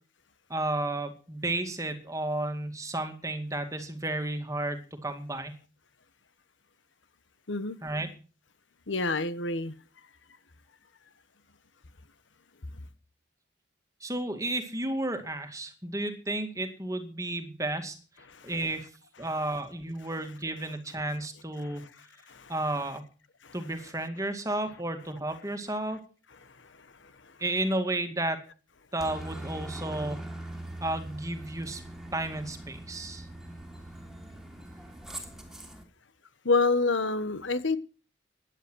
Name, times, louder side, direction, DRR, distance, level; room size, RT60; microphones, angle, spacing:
voice 1, 0.5-5.5 7.8-8.1 14.0-18.0 18.4-18.9 19.2-21.8 22.5-23.0 23.5-26.0 27.4-28.4 28.9-30.2 30.8-31.8 32.1-33.3, right 1 dB, 15° right, 2.2 m, -32 dB
voice 2, 8.9-9.7 12.7-12.8 18.3-18.5 21.6-21.9 22.3-22.5 23.4-23.5 36.4-37.8, left 3 dB, 85° left, 1.3 m, -28 dB
Aircraft, 29.0-35.8, right 1 dB, ahead, 2.9 m, -42 dB
15.5 x 11.0 x 6.3 m
head